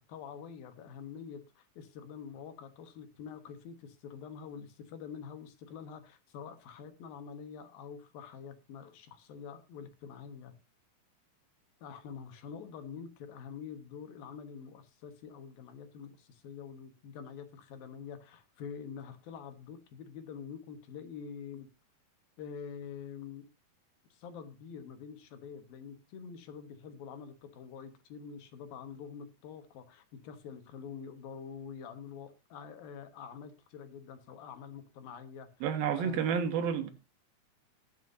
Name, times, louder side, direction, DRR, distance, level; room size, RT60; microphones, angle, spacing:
voice 1, 0.0-10.5 11.8-21.7 22.4-23.5 24.1-35.5 35.9-36.2, left 6 dB, 75° left, 3.1 m, -46 dB
voice 2, 35.6-36.9, right 7 dB, 75° right, 3.3 m, -30 dB
20.5 x 7.3 x 2.6 m
omnidirectional pair, 4.3 m